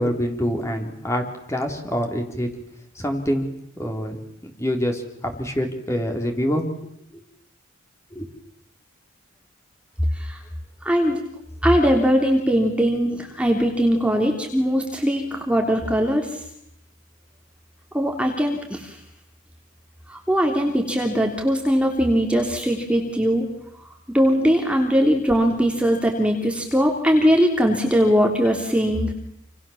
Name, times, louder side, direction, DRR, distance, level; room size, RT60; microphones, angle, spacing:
voice 1, 0.0-2.5 3.0-6.7 7.1-7.2 8.1-8.3, equal, 15° left, 3 dB, 4.0 m, -26 dB
voice 2, 10.8-11.2 11.6-16.3 17.9-18.9 20.1-23.5 24.1-29.1, equal, 5° right, 2 dB, 3.4 m, -20 dB
28.5 x 28.5 x 7.4 m, 0.75 s
head